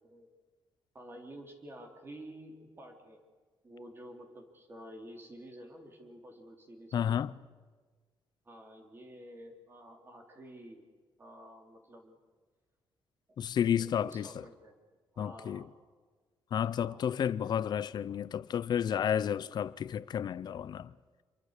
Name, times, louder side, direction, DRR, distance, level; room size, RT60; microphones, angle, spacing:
voice 1, 0.9-3.2 3.6-7.2 8.4-10.9 11.2-12.2 13.8-14.7 15.1-15.7 16.8-17.1, right 1 dB, 25° right, 3.7 m, -50 dB
voice 2, 6.9-7.3 13.4-14.3 15.2-15.6 16.5-20.9, left 9 dB, 55° left, 0.7 m, -31 dB
26.5 x 23.0 x 6.7 m
cardioid pair, 135°, 9 cm